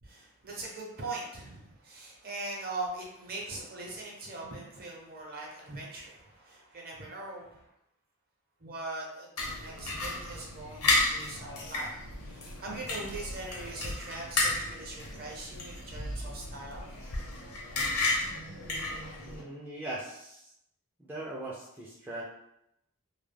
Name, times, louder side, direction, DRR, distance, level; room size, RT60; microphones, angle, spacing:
voice 1, 0.0-7.7 8.6-10.8 11.1-11.9 12.3-16.9, right 2 dB, 45° right, -2 dB, 0.6 m, -41 dB
sound 1, 9.4-19.4, left 2 dB, 80° left, 0.7 m, -33 dB
voice 2, 19.2-20.5 21.0-22.2, right 1 dB, 10° right, -7 dB, 0.3 m, -40 dB
2.2 x 2.1 x 3.2 m, 0.81 s
head